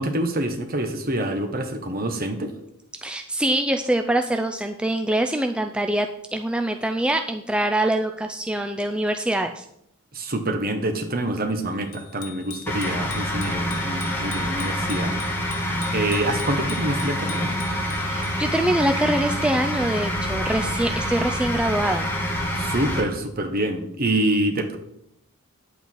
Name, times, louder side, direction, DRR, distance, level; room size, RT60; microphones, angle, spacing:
voice 1, 0.0-2.5 10.1-15.2 15.9-17.5 22.6-24.8, right 1 dB, 45° right, 5 dB, 1.4 m, -26 dB
voice 2, 3.0-9.6 18.0-22.1, right 1 dB, 5° right, 5 dB, 0.4 m, -24 dB
Bicycle bell, 11.9-18.6, left 8 dB, 85° left, 1.0 m, -42 dB
sound 1, 12.7-23.0, equal, 10° left, 1.9 m, -26 dB
9.2 x 8.3 x 4.6 m, 0.77 s
head